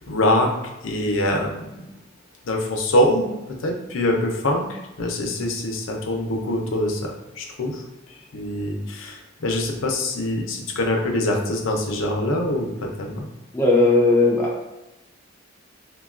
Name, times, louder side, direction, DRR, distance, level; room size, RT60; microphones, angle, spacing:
voice 1, 0.1-0.5 0.8-1.9 2.4-3.3 3.6-7.8 8.3-13.3, left 1 dB, 80° left, 1 dB, 0.5 m, -24 dB
voice 2, 13.5-14.6, left 2 dB, 10° left, -3 dB, 0.4 m, -17 dB
3.3 x 2.2 x 2.4 m, 0.97 s
head